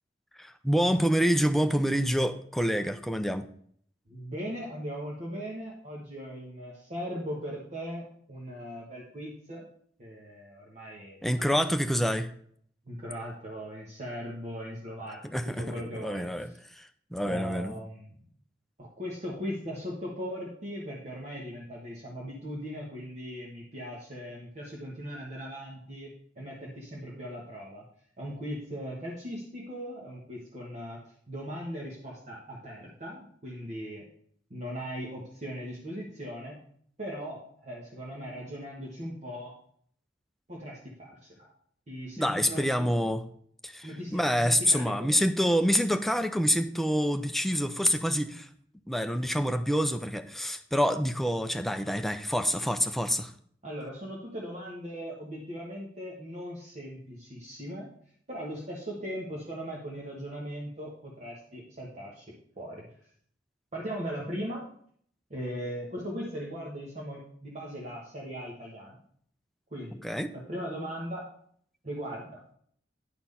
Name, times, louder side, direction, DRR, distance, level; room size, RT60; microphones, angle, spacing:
voice 1, 0.4-3.5 11.2-12.3 15.3-16.5 16.8-17.7 42.2-43.2 43.6-48.5 48.9-53.3 70.0-70.3, equal, ahead, 7 dB, 0.5 m, -27 dB
voice 2, 4.1-9.7 10.0-11.5 12.8-15.2 15.4-16.3 17.2-18.2 18.8-27.8 28.2-31.0 31.3-34.0 34.5-36.6 37.0-39.5 40.5-41.5 41.9-43.1 43.8-45.1 53.6-57.9 58.3-62.9 63.7-64.6 65.3-69.0 69.7-70.0 70.3-71.3 71.8-72.4, equal, 40° right, -4 dB, 1.5 m, -39 dB
10.5 x 4.5 x 5.5 m, 0.62 s
head